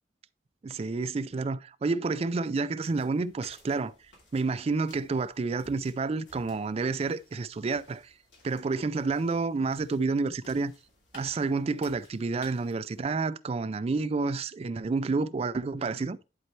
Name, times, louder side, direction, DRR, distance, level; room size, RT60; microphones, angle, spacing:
voice 1, 0.6-3.9 4.3-8.0 8.4-10.7 11.1-16.2, right 4 dB, 35° right, 0.3 m, -29 dB
sound 1, 2.8-13.0, left 2 dB, 90° left, 2.7 m, -58 dB
11.0 x 4.3 x 3.1 m
head